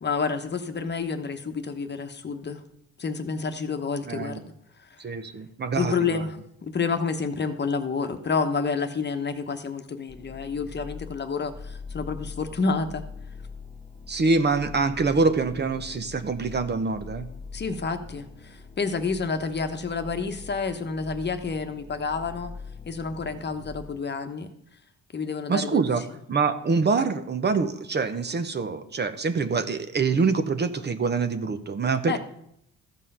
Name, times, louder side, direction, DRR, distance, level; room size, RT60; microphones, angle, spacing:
voice 1, 0.0-2.6 3.0-4.3 4.8-5.0 5.8-13.0 17.5-22.5 22.9-24.5 25.1-26.0 32.1-32.2, left 5 dB, 35° left, 7 dB, 1.0 m, -29 dB
voice 2, 4.1-4.4 5.0-6.2 14.1-17.3 25.5-26.0 26.3-32.2, right 4 dB, 35° right, 9 dB, 0.8 m, -25 dB
sound 1, 10.1-24.0, left 4 dB, 15° left, 1.4 m, -43 dB
14.0 x 5.5 x 5.5 m, 0.74 s
cardioid pair, 90°, 30 cm